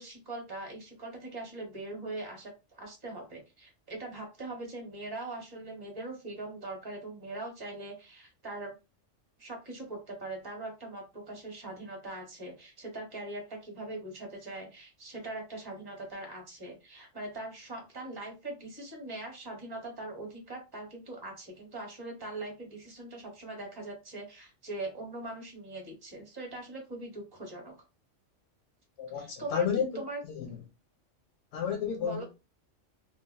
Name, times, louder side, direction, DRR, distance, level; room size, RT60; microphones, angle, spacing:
voice 1, 0.0-8.7 9.4-27.7 29.2-29.7 29.9-30.2 32.0-32.2, right 2 dB, 20° right, 0.9 m, -41 dB
voice 2, 29.0-30.0 30.3-30.6 31.5-32.2, left 7 dB, 75° left, 0.9 m, -31 dB
3.2 x 2.4 x 2.4 m
omnidirectional pair, 1.3 m